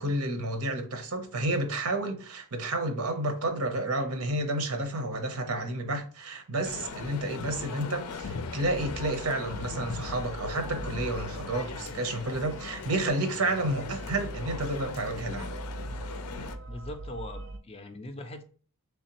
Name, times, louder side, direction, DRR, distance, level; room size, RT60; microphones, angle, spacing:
voice 1, 0.0-15.5, right 2 dB, 80° right, 0.8 m, -30 dB
Male speech man speaking, 6.6-16.6, left 5 dB, 90° left, 0.5 m, -39 dB
sound 1, 8.5-17.6, right 2 dB, 55° right, 0.4 m, -42 dB
voice 2, 16.7-18.4, left 1 dB, 25° left, 0.4 m, -41 dB
3.5 x 3.3 x 2.9 m
head